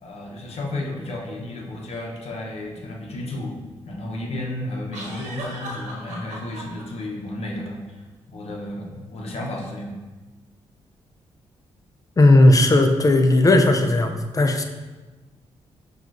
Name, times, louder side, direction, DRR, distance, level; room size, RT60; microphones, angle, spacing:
voice 1, 0.0-3.6 3.8-8.0 8.3-9.9, left 1 dB, 60° left, -1 dB, 0.7 m, -32 dB
sound 1, 1.9-2.1 4.9-6.8, right 1 dB, 80° right, 0.9 m, -36 dB
voice 2, 12.2-14.6, left 2 dB, 30° left, 5 dB, 0.4 m, -16 dB
5.9 x 2.4 x 2.5 m, 1.2 s
supercardioid pair, 60°, 12 cm